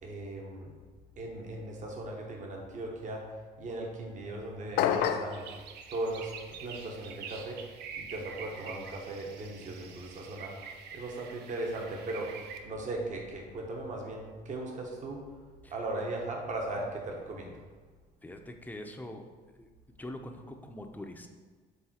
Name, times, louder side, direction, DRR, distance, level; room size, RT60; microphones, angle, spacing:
voice 1, 0.0-0.7 1.2-5.5 5.9-15.2 15.7-17.6, right 2 dB, 45° right, 1 dB, 1.1 m, -38 dB
sound 1, 4.8-5.4, left 9 dB, 80° left, 0.4 m, -27 dB
sound 2, 5.3-12.6, right 6 dB, 75° right, 0.7 m, -46 dB
voice 2, 18.2-19.3 19.6-19.7 20.0-21.3, left 1 dB, 10° left, 4 dB, 0.6 m, -43 dB
7.0 x 3.7 x 4.3 m, 1.5 s
cardioid pair, 110°, 17 cm